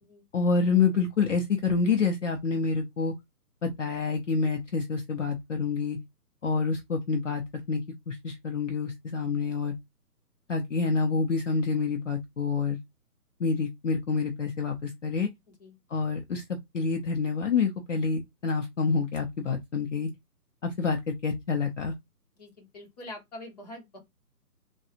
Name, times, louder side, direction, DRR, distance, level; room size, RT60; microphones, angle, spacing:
voice 1, 0.3-3.1 3.6-6.0 6.4-7.4 7.7-7.8 8.1-9.7 10.5-12.8 13.4-15.3 15.9-16.4 16.7-20.1 20.6-21.0 21.2-21.9, left 4 dB, 50° left, 0.6 m, -27 dB
voice 2, 22.4-24.0, left 1 dB, 25° left, 1.0 m, -44 dB
3.5 x 2.3 x 2.8 m
hypercardioid pair, 155°, 48 cm